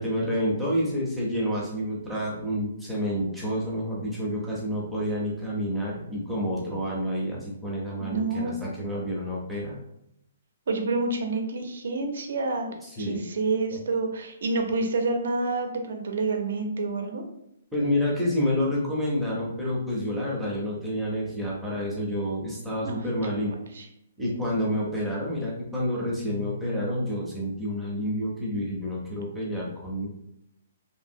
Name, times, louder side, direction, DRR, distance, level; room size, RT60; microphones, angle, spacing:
voice 1, 0.0-9.8 13.0-13.2 13.7-13.8 17.7-23.5 24.2-30.1, equal, ahead, -6 dB, 0.6 m, -29 dB
voice 2, 8.0-8.5 10.7-12.7 13.0-17.2 22.8-23.0 23.7-23.9 28.0-28.1, right 3 dB, 60° right, 4 dB, 0.5 m, -28 dB
2.8 x 2.7 x 2.6 m, 0.80 s
hypercardioid pair, 175°, 0 cm